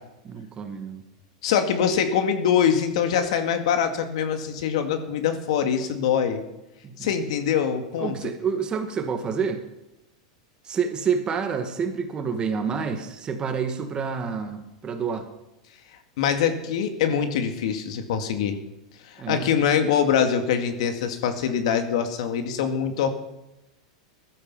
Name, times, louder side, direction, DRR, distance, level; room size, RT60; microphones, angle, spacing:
voice 1, 0.2-1.0 6.8-7.1 8.0-9.6 10.6-15.3 19.2-19.5, right 6 dB, 25° right, 7 dB, 2.0 m, -28 dB
voice 2, 1.4-6.4 7.0-8.2 16.2-18.6 19.1-23.1, left 8 dB, 70° left, 7 dB, 2.2 m, -24 dB
15.5 x 12.5 x 5.6 m, 0.94 s
supercardioid pair, 125°, 3 cm